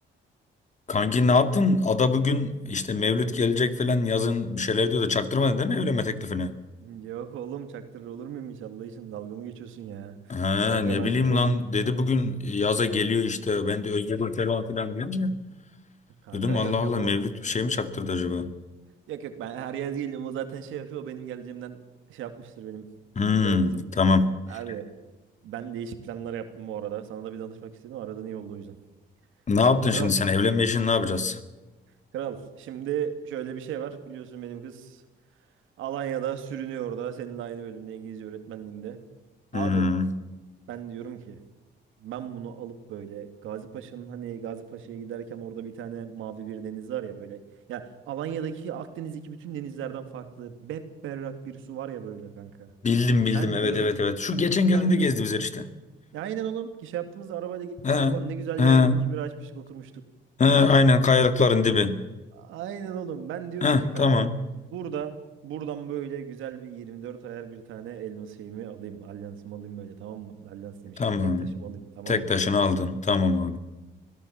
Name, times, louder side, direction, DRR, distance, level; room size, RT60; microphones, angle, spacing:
voice 1, 0.9-6.5 10.3-15.3 16.3-18.5 23.2-24.3 29.5-31.4 39.5-40.1 52.8-55.7 57.8-58.2 58.6-59.0 60.4-62.0 63.6-64.3 71.0-71.5 72.1-73.6, left 3 dB, 35° left, 10 dB, 2.2 m, -23 dB
voice 2, 6.8-11.4 16.2-17.2 19.1-21.8 22.1-22.9 23.4-23.8 24.5-24.9 25.4-28.8 29.9-30.1 32.1-35.0 35.8-39.0 39.5-39.9 40.7-41.4 42.0-47.4 47.7-52.7 53.3-54.1 54.7-55.1 56.1-60.0 62.3-64.3 64.7-71.0 71.4-72.3, right 9 dB, 90° right, 8 dB, 2.5 m, -36 dB
24.5 x 17.0 x 7.2 m, 1.1 s
cardioid pair, 90°, 20 cm